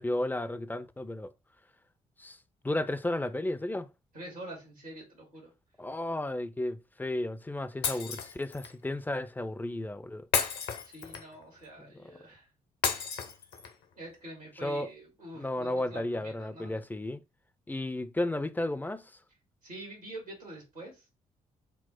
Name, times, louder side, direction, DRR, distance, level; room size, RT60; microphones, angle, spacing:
voice 1, 0.0-1.3 2.2-2.4 2.6-3.9 5.8-10.2 11.8-12.0 14.6-14.9 15.4-17.2 17.7-19.0, left 1 dB, 10° left, 0.4 m, -33 dB
voice 2, 4.1-5.5 10.8-12.5 13.9-16.8 19.6-21.1, right 1 dB, 90° right, 1.4 m, -46 dB
Shatter, 7.8-8.7 10.3-11.4 12.8-13.8, left 6 dB, 60° left, 0.7 m, -32 dB
4.5 x 2.0 x 4.3 m
figure-of-eight pair, 40°, 19 cm